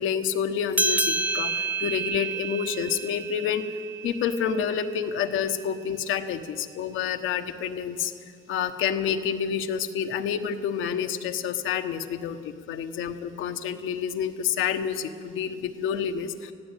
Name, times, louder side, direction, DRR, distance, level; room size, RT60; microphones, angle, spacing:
voice 1, 0.0-3.7 4.0-8.1 8.5-16.5, left 8 dB, 85° left, 8 dB, 1.2 m, -28 dB
sound 1, 0.7-5.6, right 2 dB, 5° right, 0.8 m, -30 dB
19.5 x 15.5 x 9.0 m, 2.3 s
cardioid pair, 95°, 20 cm